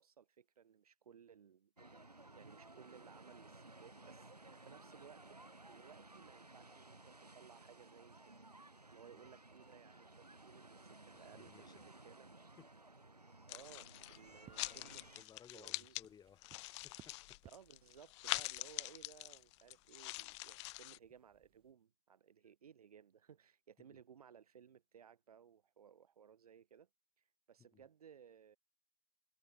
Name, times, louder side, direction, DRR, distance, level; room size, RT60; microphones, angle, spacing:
voice 1, 0.0-1.7 2.3-5.4 5.7-8.4 8.9-12.3 13.5-15.1 15.5-16.0 17.4-26.9 27.5-28.6, right 8 dB, 70° right, 2.1 m, -61 dB
sound 1, 1.8-15.2, right 2 dB, 90° right, 5.2 m, -58 dB
voice 2, 11.1-12.0 12.6-12.7 14.3-16.6 16.8-17.4 23.8-24.0 27.7-27.8, left 7 dB, 20° left, 2.9 m, -63 dB
sound 2, 13.5-14.2 14.5-16.1 16.4-21.0, left 23 dB, 45° left, 0.9 m, -44 dB
sound 3, 14.1-21.7, right 11 dB, 25° right, 1.8 m, -67 dB
figure-of-eight pair, 95°, 20 cm